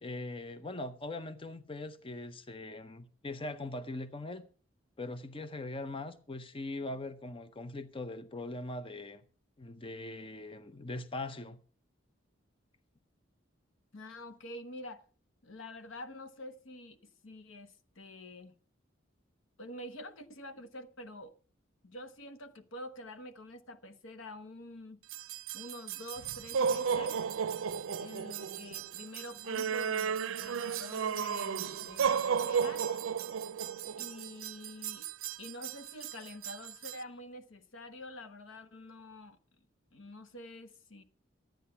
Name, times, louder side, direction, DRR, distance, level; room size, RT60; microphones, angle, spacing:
voice 1, 0.0-4.4 5.0-9.2 9.6-11.6, left 2 dB, 25° left, 0.6 m, -41 dB
voice 2, 13.9-15.1 15.4-18.5 19.6-21.3 21.8-25.0 25.5-27.2 28.0-32.8 34.0-35.1 35.4-39.4 39.9-41.0, left 1 dB, 80° left, 1.1 m, -47 dB
sound 1, 25.1-37.0, right 7 dB, 85° right, 0.5 m, -34 dB
12.5 x 9.1 x 5.6 m
head